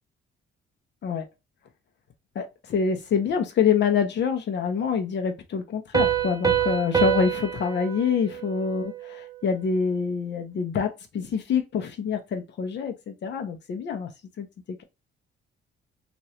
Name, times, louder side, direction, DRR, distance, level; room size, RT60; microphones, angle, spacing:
voice 1, 2.3-14.1 14.4-14.8, left 6 dB, 60° left, 0.9 m, -26 dB
Piano, 5.9-9.4, right 9 dB, 20° right, 0.7 m, -26 dB
3.0 x 2.6 x 2.8 m
cardioid pair, 90°, 20 cm